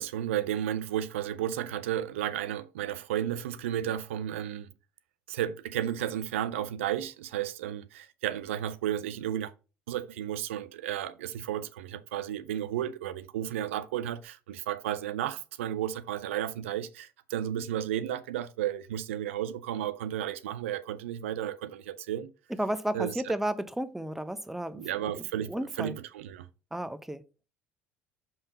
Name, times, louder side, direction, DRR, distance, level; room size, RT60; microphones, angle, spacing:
voice 1, 0.0-4.7 5.3-9.5 9.9-22.3 22.9-23.3 24.7-26.5, right 11 dB, 80° right, 0.5 m, -33 dB
voice 2, 22.6-26.0 26.7-27.2, right 1 dB, 5° right, 0.7 m, -33 dB
5.6 x 5.2 x 4.1 m
hypercardioid pair, 65°, 7 cm